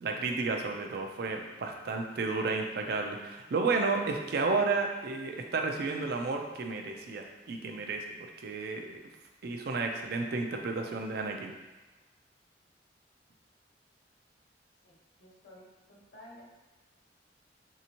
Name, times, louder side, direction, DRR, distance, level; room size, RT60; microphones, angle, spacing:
voice 1, 0.0-8.1 8.4-9.0 9.4-11.5, right 3 dB, 60° right, 3 dB, 0.4 m, -32 dB
voice 2, 14.8-16.5, left 1 dB, 75° left, -5 dB, 1.1 m, -54 dB
3.4 x 2.8 x 2.8 m, 1.2 s
head